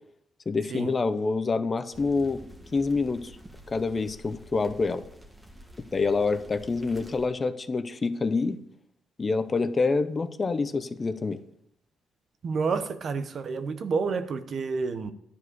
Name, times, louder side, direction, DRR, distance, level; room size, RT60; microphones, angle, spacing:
voice 1, 0.5-2.4 2.7-3.3 3.7-5.0 5.9-8.6 9.2-11.4, left 4 dB, 30° left, 0.8 m, -27 dB
sound 1, 1.9-7.3, equal, 10° right, 1.6 m, -49 dB
voice 2, 12.4-15.1, right 4 dB, 50° right, 1.0 m, -29 dB
11.5 x 4.9 x 8.1 m
cardioid pair, 90°, 0 cm